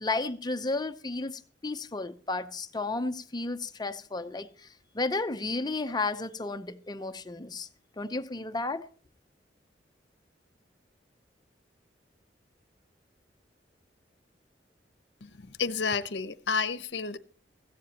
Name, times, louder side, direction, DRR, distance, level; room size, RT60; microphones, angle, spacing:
voice 1, 0.0-4.7 4.9-7.7 8.0-8.9, left 3 dB, 25° left, 0.7 m, -33 dB
voice 2, 15.2-17.2, left 5 dB, 70° left, 0.8 m, -31 dB
17.0 x 14.5 x 2.9 m
head